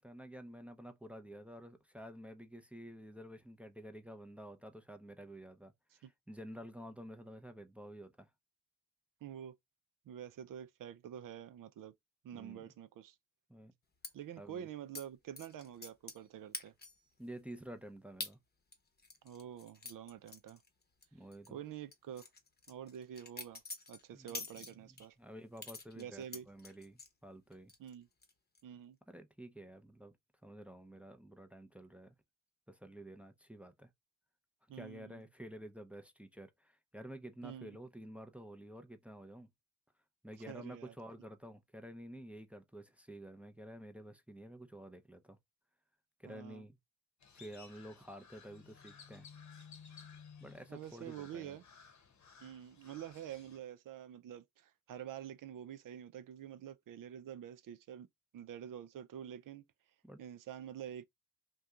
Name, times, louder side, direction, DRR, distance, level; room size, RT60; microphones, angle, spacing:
voice 1, 0.0-8.3 12.3-12.6 13.5-13.7 14.4-14.7 17.2-18.4 21.1-21.6 24.1-24.3 24.6-27.7 29.1-30.1 30.4-32.1 32.7-33.9 34.7-39.5 40.2-45.4 46.2-46.8 47.3-49.3 50.4-51.6 60.0-60.2, right 1 dB, 5° right, 0.6 m, -50 dB
voice 2, 9.2-9.6 10.1-11.9 12.2-13.2 14.1-16.7 19.2-20.6 21.5-22.2 22.7-23.6 23.9-25.2 26.0-26.5 27.8-28.1 28.6-29.0 34.7-35.2 37.4-37.8 40.5-40.9 46.2-46.6 50.7-51.6 52.4-58.1 58.3-59.6 60.2-61.0, right 10 dB, 65° right, 0.5 m, -47 dB
sound 1, 14.0-14.1 14.9-15.1 15.4-16.3 16.5-17.1 17.5-17.6 18.2-18.3 18.7-21.1 21.3-21.5 21.9-25.1 25.6-27.1 27.5-27.9 28.2-28.6, left 3 dB, 30° left, 0.9 m, -47 dB
Crow, 47.2-53.6, left 6 dB, 50° left, 0.9 m, -57 dB
2.7 x 2.3 x 3.5 m
cardioid pair, 60°, 36 cm